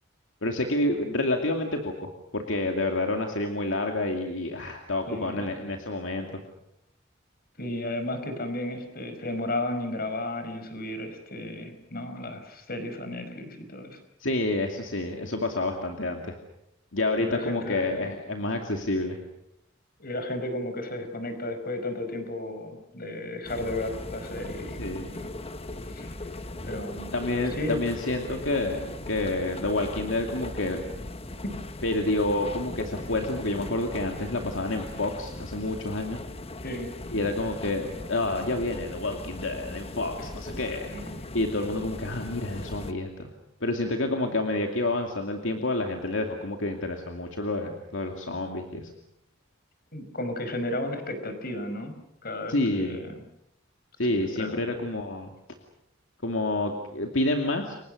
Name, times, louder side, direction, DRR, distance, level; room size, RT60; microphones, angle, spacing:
voice 1, 0.4-6.3 14.2-16.3 16.9-19.2 24.8-25.1 27.1-30.8 31.8-36.2 37.1-43.3 43.6-48.9 52.5-53.0 54.0-55.3 56.2-57.8, left 2 dB, 75° left, 3 dB, 2.6 m, -29 dB
voice 2, 5.1-5.5 7.6-14.0 17.2-18.1 20.0-25.3 25.9-26.2 26.6-27.1 27.5-27.8 36.6-37.2 40.9-41.3 49.9-51.9 52.2-53.1 54.1-54.6, left 1 dB, 50° left, 8 dB, 5.1 m, -34 dB
sound 1, 23.4-42.9, left 2 dB, 30° left, 1.3 m, -39 dB
30.0 x 24.0 x 6.5 m, 0.79 s
head